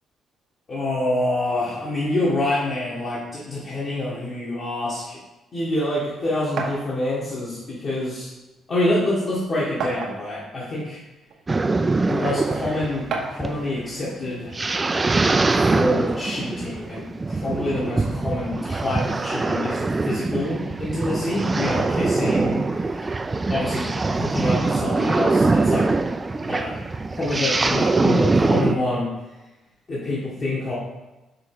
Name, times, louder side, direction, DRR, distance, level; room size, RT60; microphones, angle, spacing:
voice 1, 0.7-5.2 5.5-8.3 8.7-11.0 12.1-14.6 15.5-23.1 23.5-25.9 26.4-26.8 27.1-29.1 29.9-30.7, left 1 dB, 45° left, -7 dB, 1.6 m, -27 dB
sound 1, 6.6-6.8 8.0-8.1 8.5-8.6 9.8-10.4 11.3-11.4 13.1-13.5, right 4 dB, 75° right, 0.9 m, -29 dB
sound 2, 11.5-28.7, right 3 dB, 25° right, 0.4 m, -23 dB
5.7 x 3.5 x 4.8 m, 1.1 s
cardioid pair, 90°, 0 cm